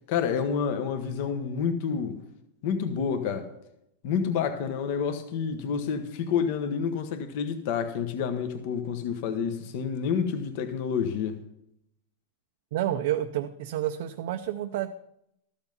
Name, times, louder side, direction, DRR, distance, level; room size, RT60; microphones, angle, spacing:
voice 1, 0.1-2.2 2.6-3.5 4.0-11.4, left 7 dB, 40° left, 1.0 m, -29 dB
voice 2, 12.7-14.9, right 12 dB, 50° right, 0.5 m, -29 dB
13.5 x 7.1 x 5.4 m
supercardioid pair, 175°, 0 cm